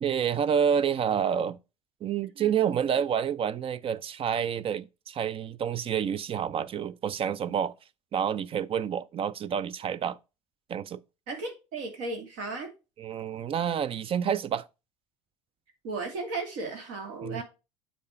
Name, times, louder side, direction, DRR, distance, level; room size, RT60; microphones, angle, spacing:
voice 1, 0.0-1.6 2.0-7.7 8.1-10.2 10.7-11.0 13.0-14.7 17.2-17.4, right 8 dB, 35° right, 0.5 m, -28 dB
voice 2, 2.4-2.9 11.3-12.7 15.8-17.4, right 3 dB, 65° right, 2.4 m, -35 dB
8.5 x 4.3 x 4.6 m
hypercardioid pair, 65°, 16 cm